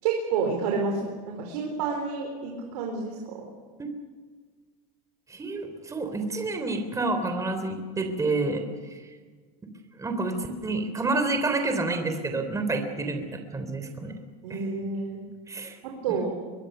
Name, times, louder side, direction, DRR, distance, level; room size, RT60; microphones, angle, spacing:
voice 1, 0.0-3.4 14.4-15.2 15.8-16.3, right 5 dB, 85° right, 1 dB, 4.4 m, -29 dB
voice 2, 5.3-8.6 10.0-14.1 14.5-14.6 15.5-15.8, right 3 dB, 15° right, 6 dB, 3.5 m, -29 dB
23.0 x 22.5 x 6.9 m, 1.5 s
supercardioid pair, 120°, 20 cm